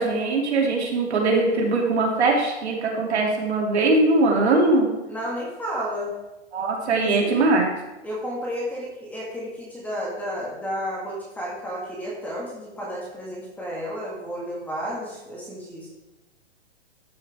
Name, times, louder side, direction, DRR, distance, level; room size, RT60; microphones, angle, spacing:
voice 1, 0.0-4.9 6.5-7.7, right 3 dB, 65° right, 0 dB, 3.1 m, -21 dB
voice 2, 5.1-6.1 6.9-7.6 8.0-15.9, equal, 5° left, -5 dB, 2.0 m, -32 dB
12.5 x 7.1 x 3.6 m, 1.0 s
hypercardioid pair, 155°, 35 cm